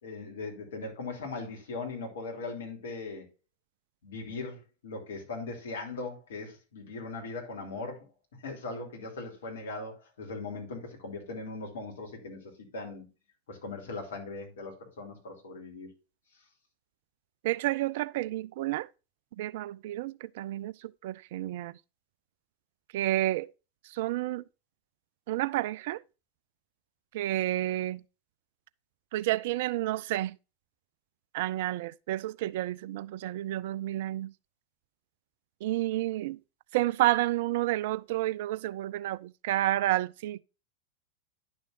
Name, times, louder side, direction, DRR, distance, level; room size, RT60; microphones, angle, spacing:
voice 1, 0.0-3.3 4.0-8.1 8.4-13.1 13.5-15.9, left 3 dB, 60° left, 3.0 m, -39 dB
voice 2, 17.4-18.9 19.3-21.8 22.9-23.5 23.8-24.4 25.3-26.0 27.1-28.0 29.1-30.4 31.3-34.3 35.6-36.4 36.7-40.4, right 15 dB, 50° right, 0.4 m, -30 dB
10.5 x 6.3 x 2.6 m
figure-of-eight pair, 90°, 0 cm